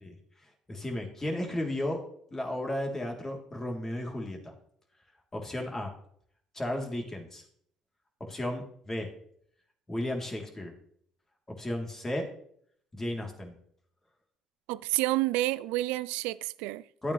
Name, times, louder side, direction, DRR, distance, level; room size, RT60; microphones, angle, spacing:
voice 1, 0.7-2.0 2.3-4.5 5.3-5.9 6.5-7.4 8.2-9.1 9.9-10.7 11.5-12.3 12.9-13.5 17.0-17.1, left 1 dB, 20° left, 3.2 m, -34 dB
voice 2, 14.7-16.8, right 18 dB, 75° right, 0.4 m, -29 dB
13.0 x 8.7 x 3.3 m
hypercardioid pair, 55°, 2 cm